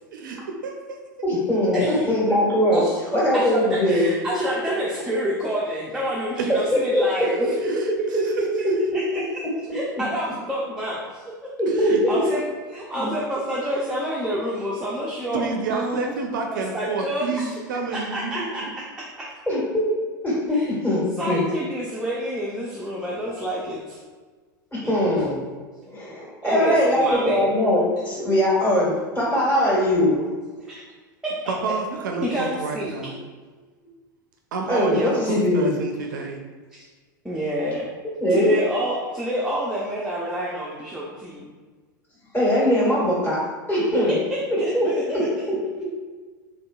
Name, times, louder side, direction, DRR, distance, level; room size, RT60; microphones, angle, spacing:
voice 1, 0.1-1.0 5.1-5.2 6.4-6.5 7.6-8.3 11.8-12.0 15.3-18.7 31.5-33.2 34.5-36.4, right 4 dB, 70° right, 2 dB, 0.4 m, -29 dB
voice 2, 1.2-2.8 3.1-4.1 6.9-7.0 7.4-7.5 8.6-8.8 11.6-12.3 12.9-13.1 19.5-19.9 20.2-21.4 24.7-25.4 25.8-30.2 34.7-35.7 38.2-38.5 42.3-44.2 44.7-45.3, equal, 15° left, -7 dB, 1.4 m, -21 dB
voice 3, 1.7-2.1 2.7-2.9 3.3-7.8 8.2-8.3 8.6-8.7 8.9-9.2 9.7-11.5 11.8-12.4 12.7-15.4 15.7-16.1 16.5-17.5 17.9-19.3 20.5-20.7 21.2-24.0 24.8-25.1 26.4-27.4 29.6-29.8 30.7-30.8 31.2-31.5 32.2-32.9 34.9-35.0 36.7-36.8 37.2-37.9 38.3-41.4 44.3-45.5, equal, 5° right, -5 dB, 0.5 m, -28 dB
3.2 x 2.8 x 2.2 m, 1.4 s
hypercardioid pair, 90°, 11 cm